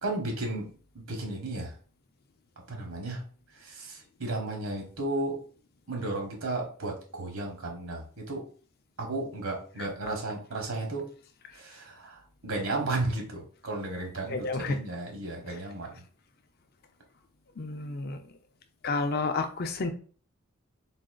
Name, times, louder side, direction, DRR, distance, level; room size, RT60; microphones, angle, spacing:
voice 1, 0.0-0.7 1.1-1.7 2.7-3.2 3.6-5.4 5.9-8.4 9.0-11.0 11.5-15.9, right 2 dB, 75° right, 1 dB, 1.2 m, -34 dB
voice 2, 14.3-14.8 17.6-18.2 18.8-19.9, left 3 dB, 45° left, 7 dB, 0.4 m, -30 dB
4.0 x 3.7 x 2.3 m, 0.42 s
head